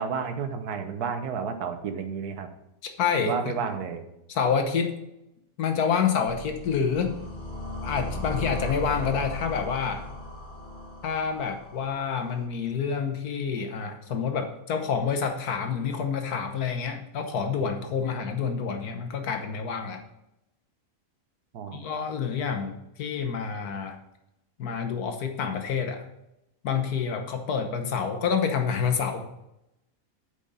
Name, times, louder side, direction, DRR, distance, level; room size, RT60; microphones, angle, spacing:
voice 1, 0.0-2.5 3.2-4.0 21.5-21.8, right 6 dB, 90° right, 7 dB, 1.5 m, -31 dB
voice 2, 2.8-3.5 4.3-5.0 5.6-7.1 7.8-10.0 11.0-20.0 21.7-24.0 24.6-26.0 26.6-29.3, left 6 dB, 80° left, 6 dB, 1.6 m, -28 dB
sound 1, 6.3-12.4, left 1 dB, 20° left, 3.5 m, -37 dB
8.6 x 5.2 x 5.5 m, 0.88 s
omnidirectional pair, 1.6 m